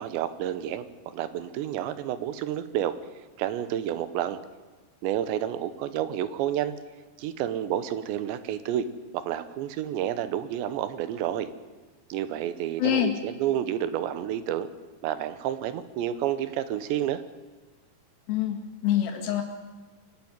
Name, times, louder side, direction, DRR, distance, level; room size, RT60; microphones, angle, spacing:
voice 1, 0.0-2.9 3.4-4.4 5.0-6.7 7.2-8.9 9.1-11.5 12.1-14.7 15.0-17.2, right 11 dB, 85° right, 13 dB, 3.3 m, -30 dB
voice 2, 12.8-13.1 18.3-18.6 18.8-19.4, left 11 dB, 65° left, 3 dB, 3.7 m, -24 dB
24.5 x 12.0 x 9.6 m, 1.3 s
omnidirectional pair, 5.0 m